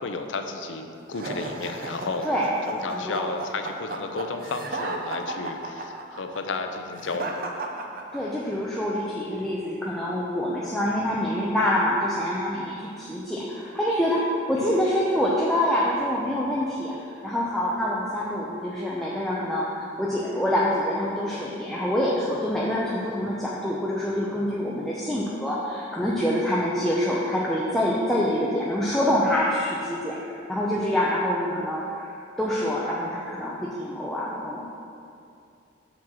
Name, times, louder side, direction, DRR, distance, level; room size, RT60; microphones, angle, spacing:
voice 1, 0.0-2.3 2.7-7.4 14.6-14.8, left 3 dB, 75° left, 6 dB, 0.5 m, -32 dB
sound 1, 1.1-8.6, right 2 dB, 45° right, 0.6 m, -34 dB
voice 2, 2.8-3.3 8.1-14.2 14.5-34.7, left 1 dB, ahead, -6 dB, 0.5 m, -26 dB
6.0 x 4.5 x 6.3 m, 2.5 s
head